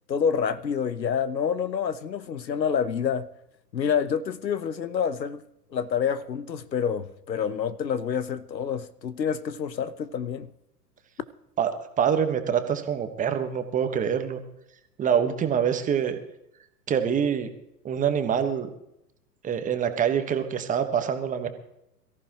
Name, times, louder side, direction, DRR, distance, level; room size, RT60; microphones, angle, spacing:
voice 1, 0.1-3.3 3.7-5.4 5.7-10.5, left 7 dB, 85° left, 1.0 m, -27 dB
voice 2, 12.0-14.4 15.0-16.2 16.9-17.5 17.8-18.7 19.4-21.5, right 8 dB, 15° right, 1.2 m, -25 dB
23.0 x 14.5 x 3.0 m
hypercardioid pair, 115°, 50 cm